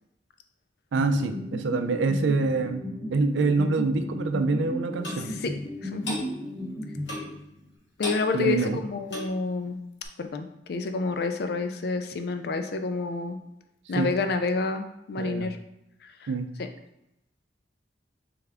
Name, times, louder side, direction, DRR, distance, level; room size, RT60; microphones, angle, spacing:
voice 1, 0.9-2.8 3.1-5.3 8.3-8.8 14.0-14.1 15.2-15.5 16.3-16.5, right 3 dB, 90° right, 8 dB, 0.4 m, -25 dB
sound 1, 1.0-7.7, equal, 5° left, 0.6 m, -35 dB
Clock, 5.0-5.2 6.0-6.3 7.1-7.4 8.0-8.3 9.0-9.3 10.0-10.1, left 1 dB, 85° left, 1.1 m, -34 dB
voice 2, 5.2-5.5 5.8-6.2 8.0-9.8 10.2-13.4 13.9-15.6 16.0-16.3 16.6-16.7, left 4 dB, 60° left, 7 dB, 0.4 m, -29 dB
3.6 x 3.4 x 3.4 m, 0.83 s
head